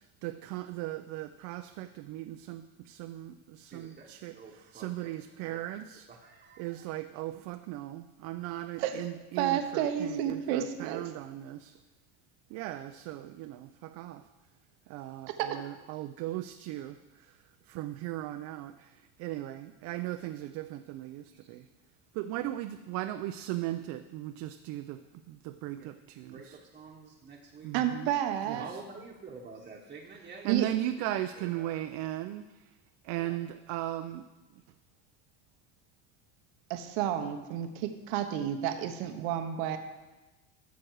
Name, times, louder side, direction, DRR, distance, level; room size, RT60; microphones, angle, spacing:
voice 1, 0.0-4.3 4.7-6.1 6.6-11.7 12.5-14.2 14.9-17.3 17.7-21.7 22.1-25.0 25.3-26.6 27.6-28.1 28.5-28.6 30.4-32.4 33.0-34.2, right 14 dB, 60° right, 8 dB, 0.5 m, -37 dB
voice 2, 3.7-5.1 5.4-5.6 5.9-6.9 21.4-21.5 25.8-25.9 26.2-27.7 28.5-30.7 31.3-31.7 33.2-33.4, right 4 dB, 25° right, -2 dB, 1.2 m, -49 dB
voice 3, 9.4-11.0 15.3-15.6 27.7-28.7 30.5-30.7 36.7-39.8, right 10 dB, 80° right, 7 dB, 0.9 m, -31 dB
13.0 x 6.2 x 4.6 m, 1.1 s
supercardioid pair, 125°, 32 cm